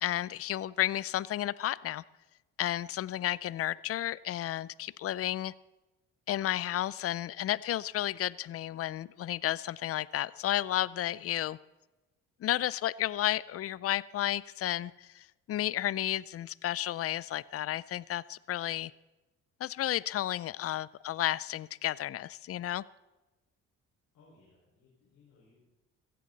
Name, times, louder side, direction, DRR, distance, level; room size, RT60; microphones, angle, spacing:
voice 1, 0.0-2.0 2.6-5.5 6.3-11.6 12.4-18.9 19.6-22.8, left 13 dB, 50° left, 21 dB, 0.5 m, -32 dB
voice 2, 24.1-25.6, left 3 dB, 80° left, -5 dB, 5.1 m, -63 dB
16.5 x 14.5 x 4.1 m, 1.1 s
cardioid pair, 90°, 30 cm